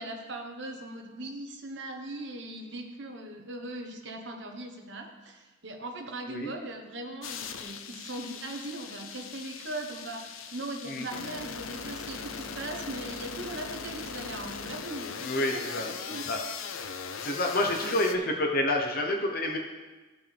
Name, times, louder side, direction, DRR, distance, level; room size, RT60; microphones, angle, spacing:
voice 1, 0.0-15.8 16.1-16.2 17.8-17.9, right 2 dB, 55° right, 2 dB, 1.2 m, -39 dB
sound 1, 7.2-18.1, left 6 dB, 75° left, 0.6 m, -39 dB
voice 2, 15.2-15.9 16.3-16.4 17.2-19.6, left 1 dB, 45° left, 2 dB, 0.9 m, -28 dB
16.0 x 6.1 x 3.4 m, 1.2 s
head